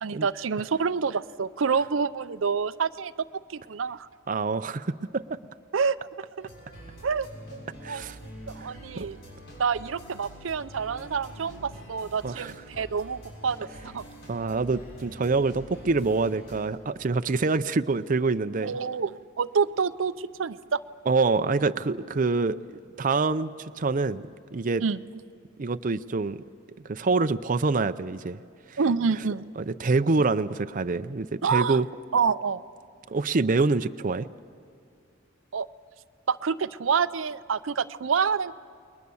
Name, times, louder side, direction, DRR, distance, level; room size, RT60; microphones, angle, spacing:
voice 1, 0.0-3.1 3.5-4.1 5.7-6.0 6.4-6.5 7.0-7.6 7.9-8.0 8.5-9.2 9.6-14.0 18.6-20.8 24.8-25.0 28.8-29.4 31.4-31.8 32.1-32.6 35.5-35.7 36.3-38.5, right 5 dB, 85° right, 13 dB, 0.6 m, -27 dB
voice 2, 4.3-5.4 7.8-8.2 8.6-9.1 12.2-12.5 14.3-18.8 21.1-24.8 25.6-26.4 26.8-28.4 28.7-28.8 29.6-31.9 33.1-34.3, right 3 dB, 45° right, 10 dB, 0.5 m, -26 dB
sound 1, 6.4-16.6, equal, 65° left, 6.9 m, -45 dB
29.5 x 21.5 x 7.0 m, 2.3 s
head